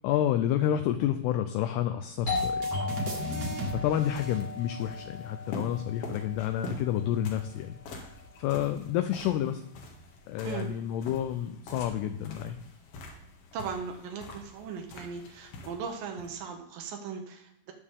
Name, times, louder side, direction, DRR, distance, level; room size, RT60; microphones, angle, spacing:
voice 1, 0.0-2.8 3.4-3.5 3.8-7.8 8.4-9.6 10.3-12.6, left 11 dB, 85° left, 8 dB, 2.3 m, -29 dB
sound 1, 2.2-5.1, right 1 dB, 60° right, 1.7 m, -35 dB
Doorbell, 2.3-7.6, left 4 dB, 40° left, 1.8 m, -37 dB
sound 2, 3.8-16.4, left 2 dB, 70° left, 3.4 m, -45 dB
voice 2, 13.5-17.7, right 6 dB, 90° right, 3 dB, 1.9 m, -38 dB
19.5 x 6.6 x 3.7 m, 0.78 s
omnidirectional pair, 5.3 m